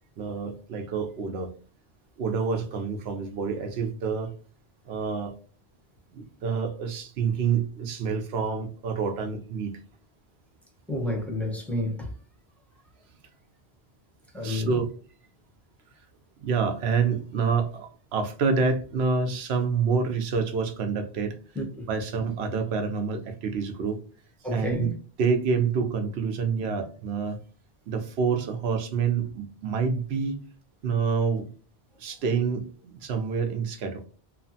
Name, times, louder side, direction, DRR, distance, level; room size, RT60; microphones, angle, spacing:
voice 1, 0.2-1.5 2.2-4.3 4.8-5.4 6.1-9.7 14.4-14.9 16.4-21.4 21.9-24.0 24.5-24.9 25.2-27.4 27.9-30.4 30.8-31.5 32.0-34.1, right 5 dB, 85° right, 0.9 m, -27 dB
voice 2, 10.9-12.1 14.3-14.7 21.6-21.9 24.4-24.9, left 1 dB, ahead, 0.6 m, -30 dB
3.0 x 2.1 x 2.7 m
omnidirectional pair, 1.1 m